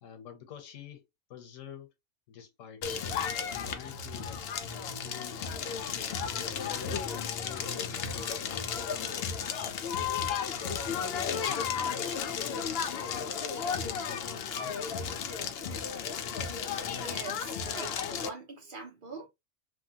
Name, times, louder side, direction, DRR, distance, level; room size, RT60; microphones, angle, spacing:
voice 1, 0.0-1.9 2.3-9.9 10.5-15.1, left 8 dB, 90° left, 1.2 m, -48 dB
Crackle, 2.8-18.3, left 7 dB, 65° left, 0.7 m, -34 dB
voice 2, 16.9-19.3, right 4 dB, 45° right, 0.8 m, -43 dB
3.0 x 2.2 x 2.7 m
omnidirectional pair, 1.3 m